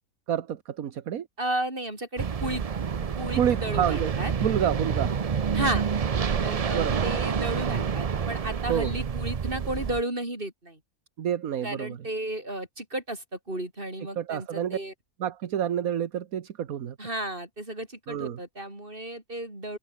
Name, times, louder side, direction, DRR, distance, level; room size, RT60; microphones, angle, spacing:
voice 1, 0.3-1.3 3.4-4.1 4.4-5.1 6.7-7.0 8.7-8.9 11.2-12.0 14.2-14.8 15.2-17.0 18.1-18.4, right 9 dB, 70° right, 1.5 m, -28 dB
voice 2, 1.4-2.6 3.2-4.3 5.5-5.9 6.4-10.8 11.6-14.9 17.0-19.8, right 1 dB, 35° right, 6.8 m, -33 dB
sound 1, 2.2-10.0, right 6 dB, 50° right, 0.4 m, -28 dB
omnidirectional pair, 1.6 m